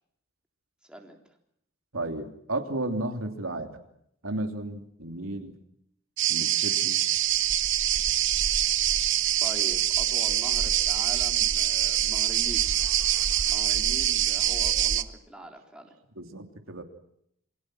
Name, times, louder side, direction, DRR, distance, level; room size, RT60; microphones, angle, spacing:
voice 1, 0.8-1.2 9.4-12.6 13.5-15.9, equal, 5° right, 1 dB, 3.7 m, -43 dB
voice 2, 1.9-3.8 4.2-5.5 6.3-7.0 16.2-16.8, right 2 dB, 85° right, 4 dB, 3.1 m, -33 dB
sound 1, 6.2-15.0, right 11 dB, 65° right, 1.0 m, -25 dB
28.0 x 23.5 x 6.2 m, 0.73 s
head